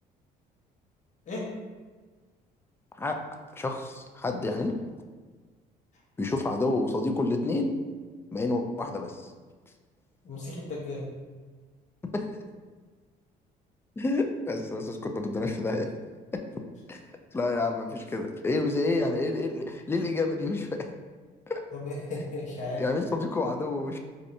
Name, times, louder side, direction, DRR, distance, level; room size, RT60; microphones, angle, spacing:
voice 1, 3.5-4.7 6.2-7.7 8.3-9.3 12.1-12.3 14.0-15.9 16.3-16.4 16.9-17.0 17.3-20.9 21.5-21.6 22.8-24.0, left 2 dB, 15° left, 4 dB, 0.3 m, -29 dB
voice 2, 10.2-11.0 21.7-22.8, left 2 dB, 45° left, -4 dB, 1.0 m, -35 dB
4.3 x 2.6 x 2.6 m, 1.4 s
cardioid pair, 110°, 17 cm